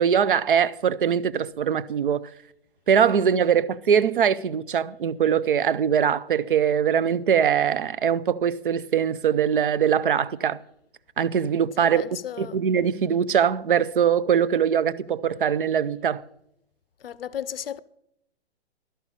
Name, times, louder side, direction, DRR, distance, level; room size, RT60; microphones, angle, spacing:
voice 1, 0.0-2.2 2.9-10.6 11.2-12.0 12.4-16.2, right 8 dB, 55° right, 0.5 m, -22 dB
voice 2, 11.8-12.6 17.0-17.8, left 9 dB, 60° left, 0.5 m, -34 dB
12.0 x 5.6 x 7.3 m
hypercardioid pair, 175°, 33 cm